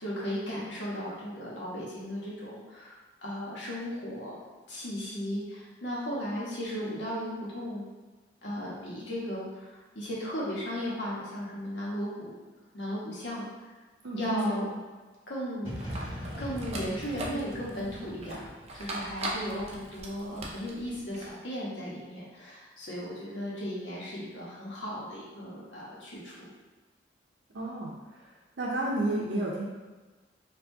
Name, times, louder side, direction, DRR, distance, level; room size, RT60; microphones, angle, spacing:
voice 1, 0.0-4.4 4.7-7.8 8.4-12.4 12.7-13.4 14.1-14.7 15.3-18.5 18.7-26.5, equal, 75° left, -6 dB, 1.2 m, -36 dB
voice 2, 14.0-14.7 27.5-28.3 28.6-29.6, right 1 dB, 80° right, -4 dB, 0.6 m, -31 dB
sound 1, 15.6-19.5, equal, 30° left, 1.3 m, -41 dB
sound 2, 15.7-21.3, right 1 dB, 35° right, 0.5 m, -40 dB
4.4 x 2.6 x 2.7 m, 1.3 s
head